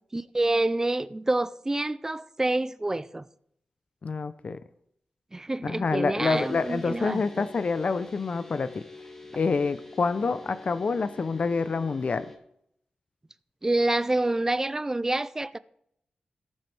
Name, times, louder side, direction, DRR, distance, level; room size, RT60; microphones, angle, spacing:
voice 1, 0.1-3.3 5.3-7.5 13.6-15.6, right 2 dB, 20° right, 0.4 m, -27 dB
voice 2, 4.0-4.6 5.6-8.8 9.3-12.3, left 4 dB, 55° left, 0.5 m, -27 dB
sound 1, 6.2-12.4, left 2 dB, 15° left, 1.9 m, -46 dB
18.0 x 7.5 x 3.3 m
wide cardioid pair, 95°, 3 cm